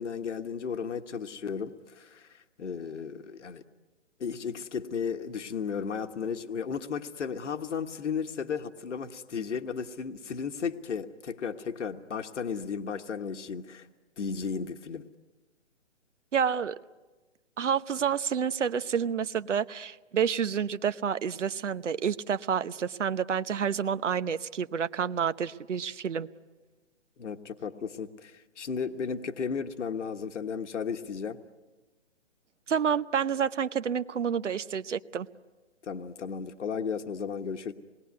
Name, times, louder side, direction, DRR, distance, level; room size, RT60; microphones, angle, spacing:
voice 1, 0.0-3.6 4.2-13.9 14.2-15.0 27.2-31.4 35.8-37.7, left 6 dB, 75° left, 8 dB, 1.4 m, -34 dB
voice 2, 16.3-16.7 17.6-26.3 32.7-35.3, right 7 dB, 75° right, 13 dB, 1.0 m, -29 dB
27.0 x 20.5 x 9.5 m, 1.2 s
hypercardioid pair, 170°, 37 cm